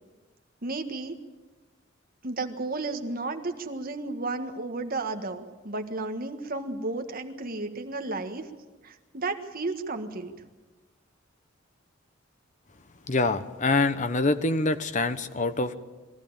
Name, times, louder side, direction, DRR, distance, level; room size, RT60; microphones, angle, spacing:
voice 1, 0.6-1.1 2.2-8.5 8.8-10.3, right 3 dB, 45° right, 6 dB, 1.6 m, -33 dB
voice 2, 13.1-15.7, left 3 dB, 40° left, 11 dB, 1.0 m, -25 dB
22.0 x 15.0 x 8.8 m, 1.2 s
head